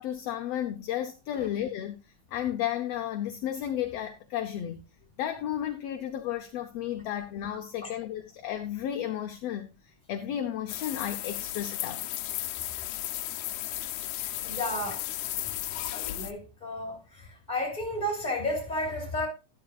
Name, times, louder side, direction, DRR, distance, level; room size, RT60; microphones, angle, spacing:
voice 1, 0.0-2.0 2.3-4.8 5.2-12.0, left 11 dB, 70° left, 1.7 m, -33 dB
sound 1, 10.7-16.3, left 14 dB, 90° left, 2.1 m, -34 dB
voice 2, 14.2-15.0 15.6-19.3, left 1 dB, 15° left, 3.6 m, -33 dB
12.5 x 12.0 x 2.4 m
omnidirectional pair, 3.3 m